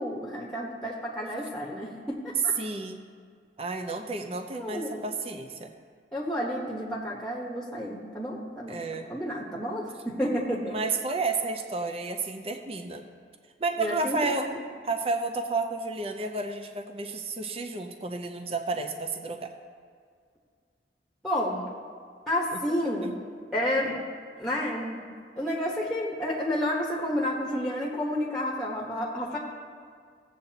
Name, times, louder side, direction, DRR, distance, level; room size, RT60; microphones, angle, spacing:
voice 1, 0.0-2.5 4.5-5.0 6.1-8.8 9.1-10.7 13.8-14.2 21.2-21.6 22.3-23.1 23.5-24.0 24.4-25.0 25.4-29.4, left 1 dB, 5° left, -3 dB, 1.1 m, -30 dB
voice 2, 2.6-3.0 3.6-5.7 8.7-9.1 10.7-13.1 13.6-14.5 14.8-19.5 22.5-22.6, right 3 dB, 35° right, 5 dB, 0.6 m, -31 dB
16.5 x 7.9 x 2.8 m, 2.1 s
head